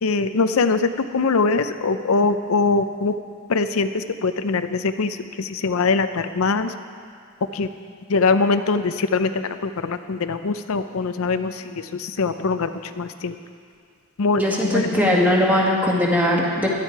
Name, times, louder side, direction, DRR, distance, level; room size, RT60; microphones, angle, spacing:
voice 1, 0.0-3.1 3.5-6.7 7.5-7.7 8.1-12.7 13.0-13.3 14.2-15.2, left 4 dB, 80° left, 9 dB, 0.6 m, -22 dB
voice 2, 14.4-16.7, left 1 dB, 10° right, -3 dB, 1.9 m, -20 dB
17.0 x 12.0 x 4.7 m, 2.3 s
head